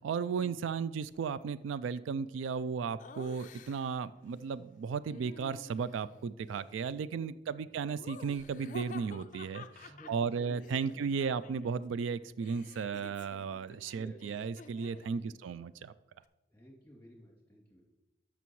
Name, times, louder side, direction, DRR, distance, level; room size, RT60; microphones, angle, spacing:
voice 1, 0.0-15.9, right 6 dB, 80° right, 16 dB, 0.3 m, -35 dB
Laughter, 3.0-4.0 5.1-6.1 7.9-11.8 12.1-15.2, left 4 dB, 40° left, 0.4 m, -51 dB
voice 2, 6.9-7.2 7.6-7.7 9.9-11.4 13.9-14.4 15.2-15.4 16.5-17.8, equal, 10° left, -3 dB, 2.6 m, -55 dB
12.5 x 6.1 x 3.1 m, 1.0 s
head